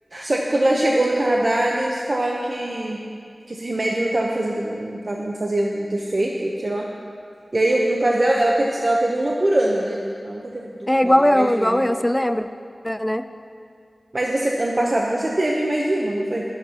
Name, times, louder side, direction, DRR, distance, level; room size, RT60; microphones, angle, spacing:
voice 1, 0.1-3.0 3.5-6.9 7.5-11.8 14.1-16.4, right 1 dB, 45° right, -1 dB, 0.8 m, -22 dB
voice 2, 10.9-12.5 12.8-13.2, left 1 dB, 10° left, 10 dB, 0.4 m, -19 dB
12.5 x 12.0 x 2.9 m, 2.3 s
wide cardioid pair, 70°, 0 cm